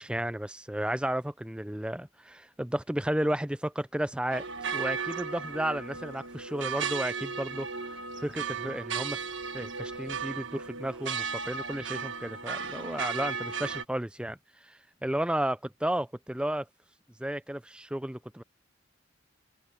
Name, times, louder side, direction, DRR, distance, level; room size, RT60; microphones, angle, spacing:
voice 1, 0.0-4.5 4.7-7.7 8.2-9.2 9.5-16.7 17.2-18.4, right 1 dB, 5° right, 0.5 m, -33 dB
sound 1, 4.3-13.8, right 5 dB, 65° right, 1.4 m, -35 dB
open air
head